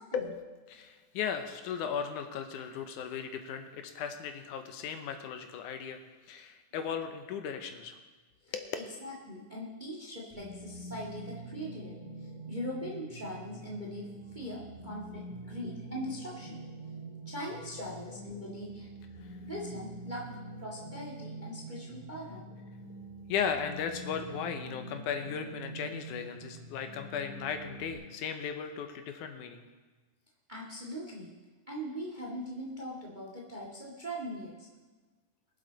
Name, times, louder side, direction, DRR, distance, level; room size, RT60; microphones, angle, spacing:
voice 1, 0.1-6.0 6.3-8.0 8.5-8.8 17.9-18.0 19.2-19.3 23.3-29.7, left 7 dB, 80° left, 7 dB, 2.3 m, -36 dB
voice 2, 8.8-11.9 12.2-16.6 17.2-18.9 19.4-20.3 20.6-22.4 30.5-31.3 31.7-34.7, equal, 20° right, -2 dB, 1.5 m, -41 dB
sound 1, 10.3-27.9, right 2 dB, 85° right, 5.3 m, -45 dB
22.5 x 7.8 x 4.0 m, 1.3 s
omnidirectional pair, 3.6 m